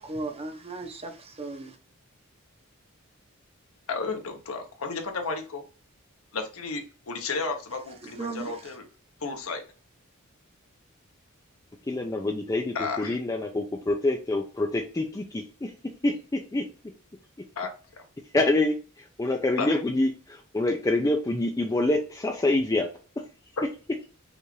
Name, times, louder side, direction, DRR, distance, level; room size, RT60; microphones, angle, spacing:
voice 1, 0.0-1.7 8.2-8.5, right 2 dB, 30° right, 0.7 m, -36 dB
voice 2, 3.9-5.6 6.3-8.9 9.2-9.6 12.7-13.2 17.6-18.0 19.6-19.8 23.6-23.7, left 4 dB, 70° left, 0.9 m, -33 dB
voice 3, 11.8-15.7 16.0-16.7 18.3-22.9, left 2 dB, 15° left, 0.4 m, -26 dB
5.4 x 2.5 x 3.1 m
head